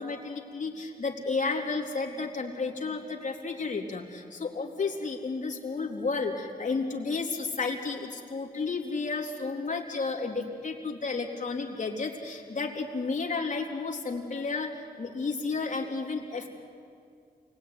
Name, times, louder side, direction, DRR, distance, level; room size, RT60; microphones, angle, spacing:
voice 1, 0.0-16.5, left 4 dB, 50° left, 1 dB, 3.6 m, -32 dB
28.5 x 21.0 x 9.7 m, 2.3 s
wide cardioid pair, 110°, 17 cm